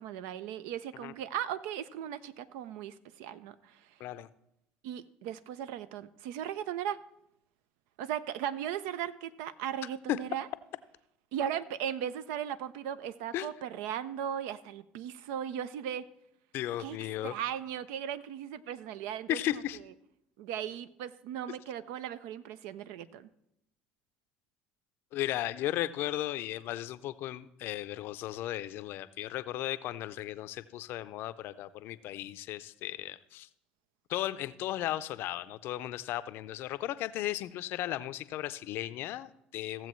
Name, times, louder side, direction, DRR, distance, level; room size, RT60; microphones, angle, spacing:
voice 1, 0.0-3.7 4.8-7.0 8.0-10.5 11.3-16.1 16.8-17.0 17.2-19.4 20.4-23.3, right 10 dB, 75° right, 15 dB, 0.4 m, -37 dB
voice 2, 16.5-17.3 19.3-19.8 25.1-33.5 34.1-39.9, left 14 dB, 65° left, 14 dB, 0.5 m, -35 dB
15.5 x 7.4 x 3.1 m, 0.79 s
hypercardioid pair, 75°, 4 cm